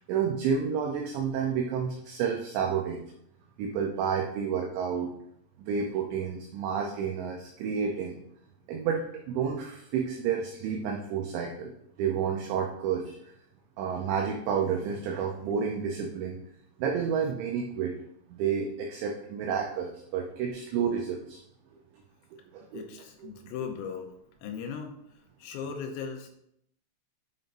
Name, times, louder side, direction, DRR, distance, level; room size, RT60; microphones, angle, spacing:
voice 1, 0.1-3.0 3.6-5.1 5.6-8.2 8.7-11.7 12.0-13.2 13.8-16.4 16.8-17.9 18.3-21.4 22.3-22.9 23.6-23.7, right 7 dB, 80° right, 1 dB, 2.6 m, -30 dB
voice 2, 22.7-24.1 24.4-25.0 25.4-26.3, left 6 dB, 80° left, 4 dB, 3.3 m, -37 dB
10.5 x 5.7 x 2.6 m, 0.73 s
omnidirectional pair, 6.0 m